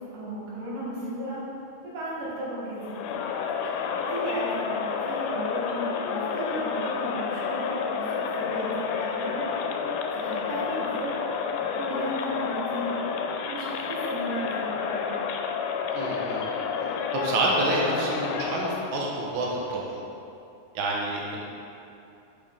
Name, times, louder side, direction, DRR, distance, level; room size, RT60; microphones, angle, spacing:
voice 1, 0.1-1.4 1.8-3.0 4.1-9.8 10.1-11.2 11.6-12.9 13.4-15.2, right 1 dB, 85° right, -7 dB, 3.2 m, -34 dB
Crowd, 2.8-19.1, left 6 dB, 85° left, 2.1 m, -30 dB
voice 2, 15.9-16.6 17.1-19.8 20.7-21.4, right 2 dB, 65° right, -3 dB, 1.2 m, -28 dB
7.0 x 6.1 x 3.7 m, 2.7 s
omnidirectional pair, 3.5 m